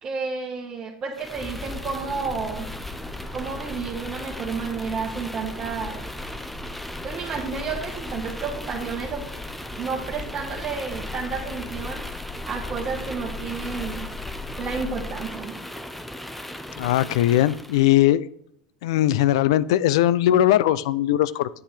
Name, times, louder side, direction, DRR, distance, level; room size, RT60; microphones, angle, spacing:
voice 1, 0.0-2.7 3.3-6.0 7.0-9.2 9.7-12.0 12.4-14.1 14.6-15.6, right 5 dB, 35° right, -2 dB, 1.3 m, -31 dB
sound 1, 1.1-17.9, left 1 dB, 5° left, 0.6 m, -35 dB
voice 2, 16.8-18.3 18.8-21.5, left 13 dB, 70° left, 18 dB, 0.3 m, -19 dB
8.6 x 7.5 x 3.4 m, 0.73 s
hypercardioid pair, 105°, 3 cm